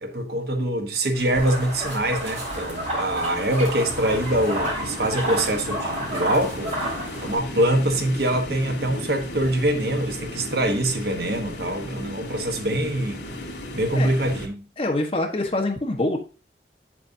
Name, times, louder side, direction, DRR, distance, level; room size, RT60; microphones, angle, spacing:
voice 1, 0.0-6.7 7.2-13.2 13.7-14.7, right 1 dB, 65° right, 1.2 m, -24 dB
sound 1, 1.1-14.5, left 1 dB, 75° left, 2.6 m, -36 dB
sound 2, 1.4-7.4, right 1 dB, 40° right, 4.5 m, -31 dB
voice 2, 14.8-16.2, left 2 dB, 30° left, 1.3 m, -25 dB
8.8 x 7.4 x 2.7 m
head